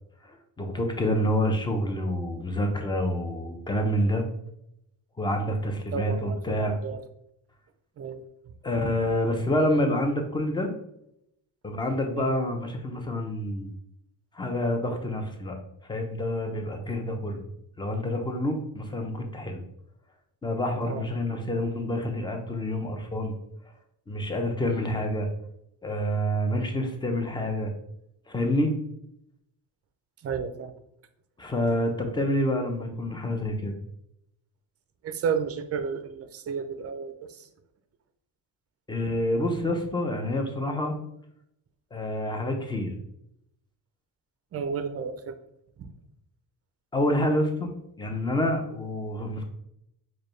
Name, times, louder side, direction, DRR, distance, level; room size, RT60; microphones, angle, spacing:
voice 1, 0.2-4.3 5.2-6.8 8.6-10.7 11.6-13.7 14.3-15.6 15.9-17.4 17.8-19.6 20.4-23.3 24.1-25.3 25.8-27.7 28.3-28.7 31.4-33.7 38.9-40.9 41.9-42.9 46.9-47.7 48.0-49.4, left 1 dB, 10° left, 4 dB, 0.6 m, -27 dB
voice 2, 5.9-7.0 8.0-8.2 12.1-12.3 20.9-21.0 30.2-30.7 35.0-37.5 44.5-45.4 45.8-45.9, right 6 dB, 40° right, 9 dB, 0.5 m, -32 dB
4.7 x 2.3 x 3.1 m, 0.76 s
cardioid pair, 120°, 38 cm